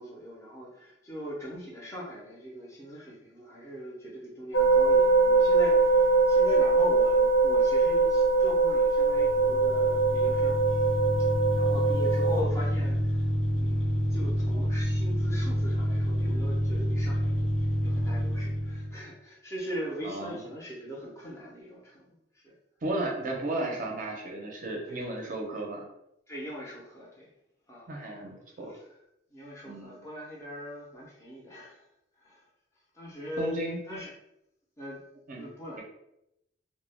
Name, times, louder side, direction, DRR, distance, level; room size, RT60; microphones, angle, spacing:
voice 1, 0.0-10.9 11.6-22.5 24.9-25.3 26.3-27.3 27.7-27.9 28.7-28.8 29.3-31.8 32.2-32.5 32.9-33.5 33.9-34.1 34.8-35.0 35.4-35.8, equal, 15° left, -5 dB, 0.5 m, -40 dB
sound 1, 4.5-12.4, right 3 dB, 90° left, 0.4 m, -22 dB
sound 2, 9.1-19.0, equal, 65° left, 1.1 m, -28 dB
voice 2, 20.0-20.4 22.8-25.9 27.9-28.7 29.6-30.0 33.4-33.8 35.3-35.5 35.7-35.8, right 1 dB, 45° right, 0 dB, 0.5 m, -34 dB
2.2 x 2.1 x 3.3 m, 0.83 s
head